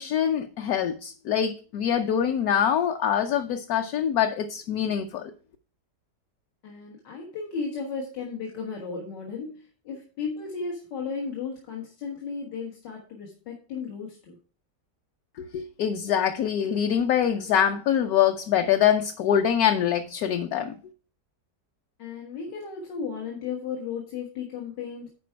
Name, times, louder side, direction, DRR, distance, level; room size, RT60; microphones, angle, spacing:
voice 1, 0.0-5.3 15.4-20.8, left 9 dB, 70° left, 1.1 m, -24 dB
voice 2, 6.6-14.4 22.0-25.1, left 5 dB, 90° left, 2.1 m, -35 dB
10.0 x 4.7 x 4.5 m
omnidirectional pair, 1.8 m